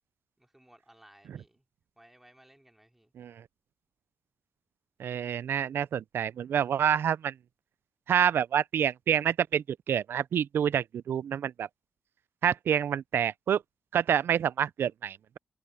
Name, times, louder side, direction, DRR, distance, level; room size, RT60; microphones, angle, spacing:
voice 1, 0.4-1.6 2.0-3.1, right 1 dB, 5° right, 3.1 m, -59 dB
voice 2, 5.0-7.3 8.1-11.7 12.4-13.6 13.9-15.4, right 9 dB, 65° right, 0.4 m, -27 dB
wide cardioid pair, 175°, 4 cm